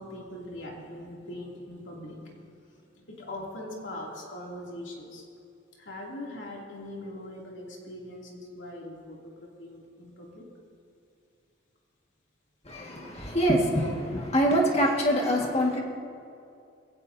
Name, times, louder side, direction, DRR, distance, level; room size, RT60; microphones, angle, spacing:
voice 1, 0.0-5.2 5.7-10.5, left 1 dB, 70° left, -3 dB, 2.8 m, -41 dB
voice 2, 12.7-15.8, equal, 30° left, -1 dB, 1.8 m, -25 dB
22.0 x 16.5 x 2.8 m, 2.5 s
head